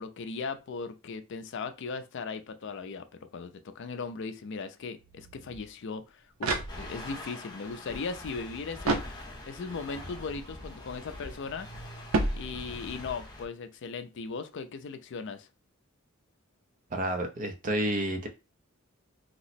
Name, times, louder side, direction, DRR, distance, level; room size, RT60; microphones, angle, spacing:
voice 1, 0.0-12.0 12.3-15.5, left 4 dB, 60° left, 0.4 m, -38 dB
sound 1, 4.8-5.7 6.6-12.6, right 2 dB, 65° right, 1.0 m, -54 dB
sound 2, 5.9-7.3 8.8-9.7 12.1-13.0, right 3 dB, 85° right, 0.6 m, -31 dB
sound 3, 6.7-13.5, left 1 dB, 20° left, 0.8 m, -44 dB
voice 2, 16.9-18.3, right 1 dB, 40° right, 0.6 m, -30 dB
2.9 x 2.0 x 4.0 m
head